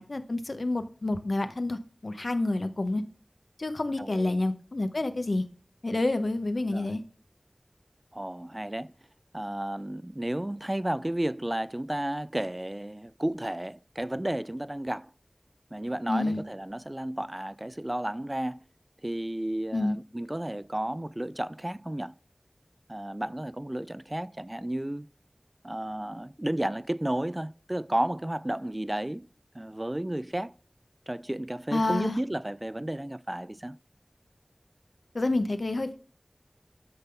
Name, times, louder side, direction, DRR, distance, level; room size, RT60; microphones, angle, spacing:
voice 1, 0.0-3.0 3.6-5.4 5.8-7.0 16.1-16.4 19.7-20.0 31.7-32.2 35.1-36.0, left 2 dB, 85° left, 1.1 m, -28 dB
voice 2, 4.0-4.4 6.6-6.9 8.1-8.9 9.3-15.1 15.7-18.6 19.0-22.1 22.9-25.1 25.6-29.3 29.5-30.5 31.1-33.8, right 1 dB, 30° right, 0.5 m, -32 dB
12.0 x 4.0 x 7.0 m
wide cardioid pair, 45°, 0 cm